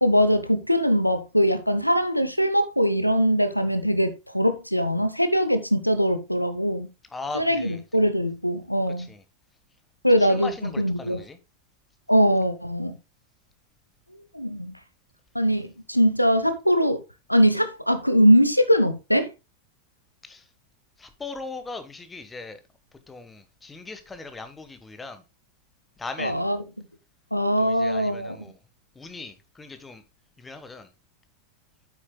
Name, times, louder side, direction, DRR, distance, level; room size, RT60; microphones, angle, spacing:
voice 1, 0.0-6.9 7.3-9.1 10.0-10.5 10.8-11.2 12.1-13.0 14.3-14.7 15.3-17.0 17.3-19.3 26.2-26.6 27.3-28.4, equal, 90° left, 0.8 m, -21 dB
voice 2, 7.1-7.8 9.0-9.2 10.1-11.4 20.2-20.5 21.0-22.6 23.1-25.2 26.0-26.4 27.6-28.6 28.9-30.0 30.4-30.9, left 3 dB, 15° left, 1.3 m, -39 dB
9.2 x 8.1 x 2.3 m
figure-of-eight pair, 90°, 0 cm